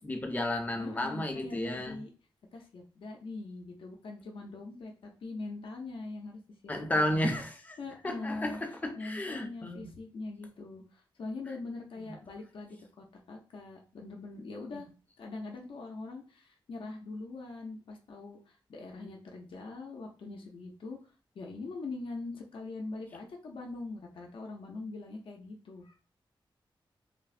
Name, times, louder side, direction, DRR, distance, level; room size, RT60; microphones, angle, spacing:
voice 1, 0.0-2.0 6.7-7.8 8.0-9.9 12.0-12.1 14.7-14.8, left 1 dB, 20° left, 0.5 m, -33 dB
voice 2, 0.8-2.1 2.5-7.3 7.8-8.6 8.9-14.9 15.2-21.0 21.3-25.9, left 3 dB, 75° left, 0.5 m, -42 dB
3.2 x 2.0 x 2.4 m
wide cardioid pair, 125°, 9 cm